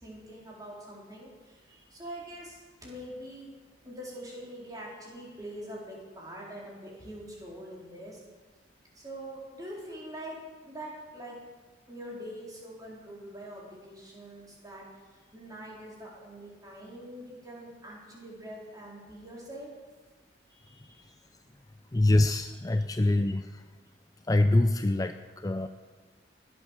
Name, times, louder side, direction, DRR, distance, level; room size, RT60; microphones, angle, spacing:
voice 1, 0.0-3.5 3.8-8.2 8.9-10.4 10.6-11.3 11.9-14.8 15.1-19.7 20.5-21.2 22.7-22.8, right 1 dB, 20° right, -4 dB, 4.2 m, -44 dB
voice 2, 21.9-23.6 24.3-25.7, left 2 dB, 20° left, 9 dB, 0.4 m, -25 dB
20.5 x 8.7 x 6.6 m, 1.4 s
head